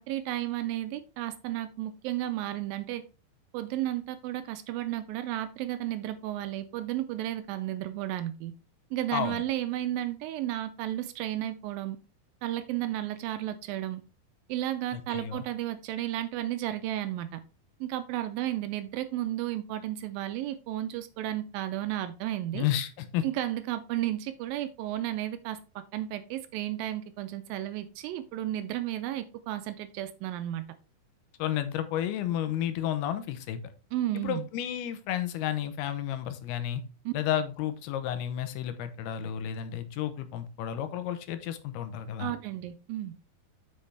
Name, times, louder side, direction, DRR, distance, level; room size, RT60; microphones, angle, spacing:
voice 1, 0.0-3.0 3.5-8.5 8.9-12.0 12.4-14.0 14.5-17.4 17.8-22.7 23.2-30.7 33.9-34.5 37.1-37.2 42.2-43.1, right 13 dB, 80° right, 11 dB, 2.2 m, -33 dB
voice 2, 9.1-9.4 14.9-15.5 22.5-23.2 31.4-33.6 34.1-36.8 37.1-42.3, left 10 dB, 85° left, 10 dB, 2.8 m, -32 dB
8.3 x 5.6 x 3.3 m, 0.33 s
omnidirectional pair, 4.4 m